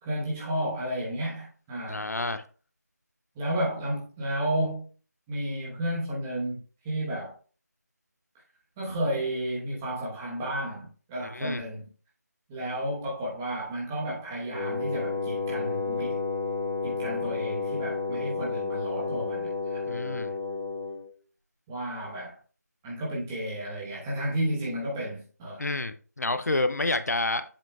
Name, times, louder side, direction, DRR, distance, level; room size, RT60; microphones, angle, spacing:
voice 1, 0.0-2.1 3.3-4.9 5.3-6.6 6.8-7.3 8.8-11.9 12.5-16.2 16.8-19.8 21.7-22.4 22.8-25.6, right 1 dB, 10° right, 1.0 m, -32 dB
voice 2, 1.9-2.4 11.2-11.6 19.9-20.3 25.6-27.4, left 2 dB, 65° left, 0.6 m, -29 dB
Wind instrument woodwind instrument, 14.5-21.1, left 4 dB, 65° right, 2.9 m, -31 dB
7.6 x 7.1 x 2.3 m
figure-of-eight pair, 165°, 10 cm